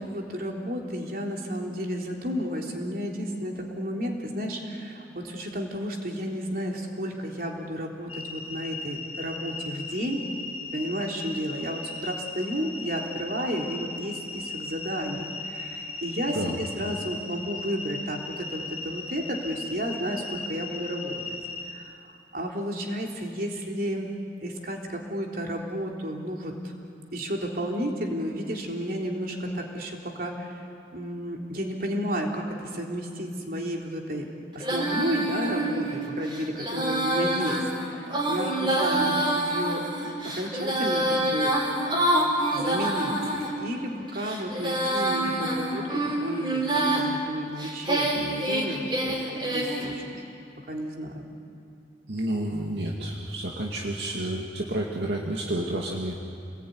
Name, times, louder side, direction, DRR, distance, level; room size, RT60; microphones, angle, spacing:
voice 1, 0.0-10.2 10.7-21.4 21.7-24.1 24.4-26.6 27.1-30.6 30.9-34.3 34.5-39.8 40.2-41.5 42.5-50.0 50.7-51.3, equal, 55° right, 0 dB, 3.6 m, -32 dB
sound 1, 8.1-21.7, left 3 dB, 35° left, 3.5 m, -37 dB
Female singing, 34.6-43.5 44.1-47.1 47.6-49.9, right 1 dB, 30° right, 4.7 m, -27 dB
voice 2, 52.1-56.1, right 1 dB, 75° right, -2 dB, 2.4 m, -30 dB
29.0 x 20.0 x 9.6 m, 2.5 s
head